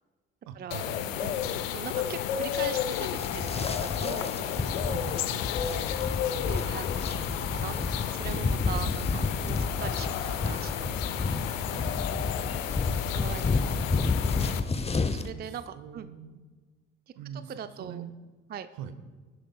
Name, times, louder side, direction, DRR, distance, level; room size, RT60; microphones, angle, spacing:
voice 1, 0.4-1.8 4.9-5.6 11.7-12.4 15.3-16.4 17.1-18.1 18.7-18.9, right 8 dB, 60° right, 10 dB, 1.3 m, -44 dB
sound 1, 0.7-14.6, left 10 dB, 70° left, 0.7 m, -32 dB
voice 2, 1.7-4.7 5.2-5.4 6.4-10.9 13.1-13.5 15.1-16.1 17.5-18.0 18.5-18.7, right 8 dB, 25° right, 12 dB, 0.5 m, -41 dB
sound 2, 2.9-15.3, left 3 dB, 15° left, 0.8 m, -31 dB
23.5 x 11.5 x 2.3 m, 1.4 s
figure-of-eight pair, 50°, 40 cm